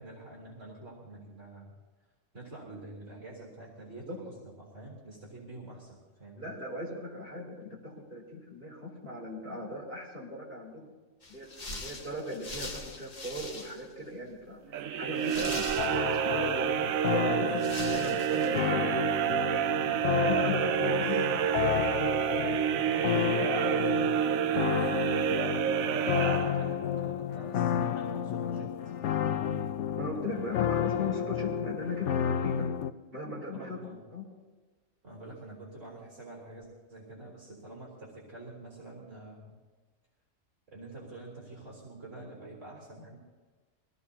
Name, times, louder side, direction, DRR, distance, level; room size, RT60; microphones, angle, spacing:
voice 1, 0.0-1.7 2.3-6.5 19.8-21.2 25.7-28.9 29.3-29.6 33.5-34.0 35.0-39.6 40.7-43.2, right 2 dB, 65° right, -3 dB, 4.1 m, -46 dB
voice 2, 6.4-10.9 11.3-14.6 15.0-19.0 20.2-24.8 30.0-32.7 33.1-34.2, left 2 dB, 40° right, -5 dB, 4.6 m, -38 dB
sound 1, 11.2-14.0 14.3-14.4 15.2-16.4 17.1-17.2 17.6-18.7, left 2 dB, 35° left, 1.3 m, -41 dB
sound 2, 14.7-27.0, right 10 dB, 85° right, 1.0 m, -29 dB
sound 3, 15.8-32.9, left 9 dB, 65° left, 0.9 m, -31 dB
24.0 x 17.0 x 2.8 m, 1.3 s
omnidirectional pair, 1.4 m